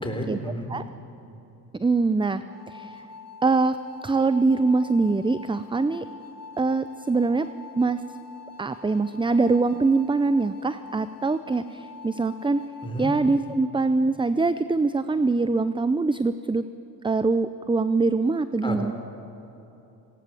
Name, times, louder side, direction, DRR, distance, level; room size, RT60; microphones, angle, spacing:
voice 1, 0.0-0.7 12.8-13.1 18.6-18.9, equal, 10° left, 3 dB, 4.0 m, -31 dB
voice 2, 1.8-3.0 3.4-3.8 4.0-6.1 6.6-7.5 7.8-8.0 8.6-12.6 13.0-16.6 17.0-18.9, right 3 dB, 10° right, 12 dB, 0.5 m, -23 dB
sound 1, 2.4-13.6, left 4 dB, 35° left, 2.0 m, -45 dB
18.5 x 18.0 x 7.8 m, 3.0 s
cardioid pair, 70°, 42 cm